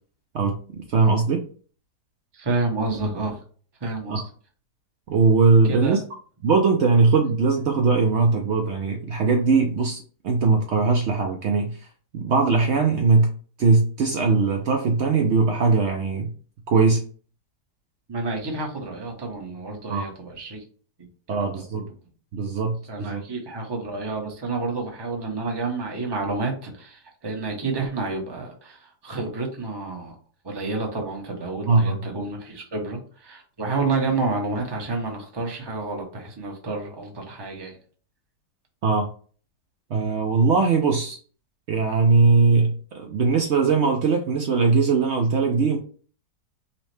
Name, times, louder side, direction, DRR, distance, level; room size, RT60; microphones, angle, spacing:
voice 1, 0.3-1.4 4.1-4.2 5.1-6.0 6.4-10.0 10.2-11.8 12.1-13.3 13.6-16.3 16.7-17.0 19.9-20.1 21.3-21.9 22.3-23.2 31.7-32.0 38.8-39.1 39.9-41.2 41.7-45.8, right 4 dB, 85° right, 0.6 m, -20 dB
voice 2, 2.3-3.4 3.8-4.2 5.6-6.0 18.1-20.6 21.0-21.8 22.9-30.1 30.4-37.8, right 3 dB, 25° right, 0.5 m, -29 dB
5.4 x 2.1 x 3.2 m
omnidirectional pair, 1.8 m